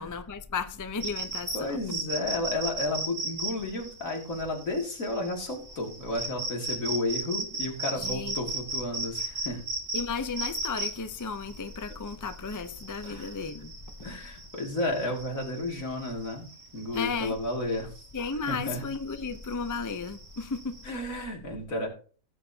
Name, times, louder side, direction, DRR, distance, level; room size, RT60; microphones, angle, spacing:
voice 1, 0.0-1.8 8.0-8.3 9.9-13.7 16.9-17.4 18.1-20.8, left 4 dB, 25° left, 0.4 m, -34 dB
sound 1, 1.0-20.9, right 2 dB, 75° right, 2.8 m, -37 dB
voice 2, 1.5-9.6 13.0-13.3 14.0-16.5 16.7-17.9 18.5-18.8 20.8-21.9, left 2 dB, 65° left, 3.0 m, -32 dB
16.5 x 8.9 x 2.8 m
omnidirectional pair, 1.5 m